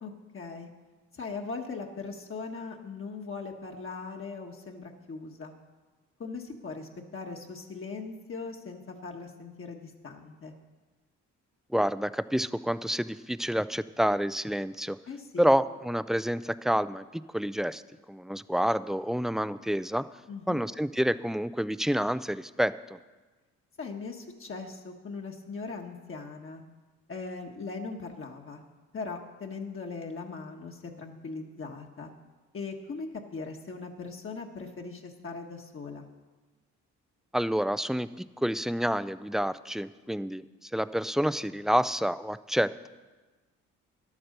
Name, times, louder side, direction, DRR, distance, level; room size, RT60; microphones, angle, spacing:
voice 1, 0.0-0.7 1.1-5.5 6.2-10.5 15.1-15.5 20.3-20.6 23.8-26.6 27.1-28.6 28.9-32.1 32.5-36.1, left 4 dB, 45° left, 1 dB, 1.4 m, -39 dB
voice 2, 11.7-15.0 15.4-17.8 18.1-20.1 20.5-23.0 37.3-42.9, equal, ahead, 15 dB, 0.4 m, -28 dB
11.5 x 8.9 x 6.6 m, 1.3 s
supercardioid pair, 70°, 30 cm